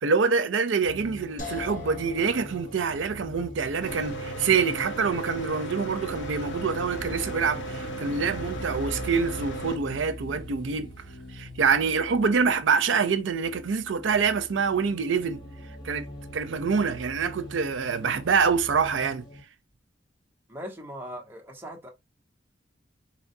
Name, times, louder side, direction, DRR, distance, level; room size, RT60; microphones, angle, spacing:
voice 1, 0.0-10.9 11.3-15.4 15.8-16.1 16.3-19.2, right 5 dB, 90° right, 0.5 m, -26 dB
sound 1, 0.8-19.4, equal, 25° left, 1.1 m, -43 dB
sound 2, 1.4-14.5, left 2 dB, 45° left, 1.2 m, -48 dB
Mechanical fan, 3.8-9.8, right 1 dB, 80° left, 0.7 m, -35 dB
voice 2, 20.5-21.9, equal, 10° right, 0.9 m, -39 dB
4.2 x 2.3 x 2.6 m
head